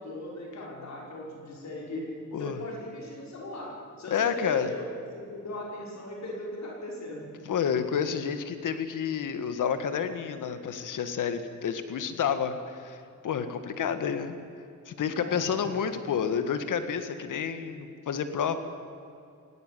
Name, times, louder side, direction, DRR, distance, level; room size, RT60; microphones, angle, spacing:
voice 1, 0.0-2.1 2.4-7.3 15.1-15.8, left 1 dB, 60° left, -2 dB, 6.0 m, -39 dB
voice 2, 4.1-4.7 7.5-14.4 14.9-18.6, left 7 dB, 75° left, 10 dB, 1.9 m, -29 dB
19.0 x 17.0 x 9.4 m, 2.6 s
cardioid pair, 100°, 32 cm